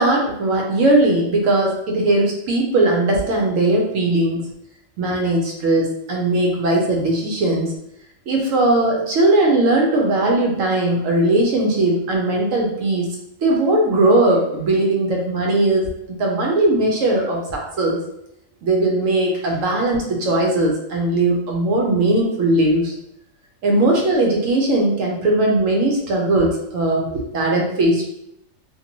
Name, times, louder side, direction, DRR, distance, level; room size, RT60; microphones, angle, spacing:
voice 1, 0.0-4.5 5.0-7.7 8.3-13.1 13.4-15.9 16.2-18.0 18.6-22.9 23.6-28.1, right 2 dB, 75° right, -1 dB, 1.0 m, -19 dB
2.7 x 2.5 x 2.8 m, 0.78 s
omnidirectional pair, 1.4 m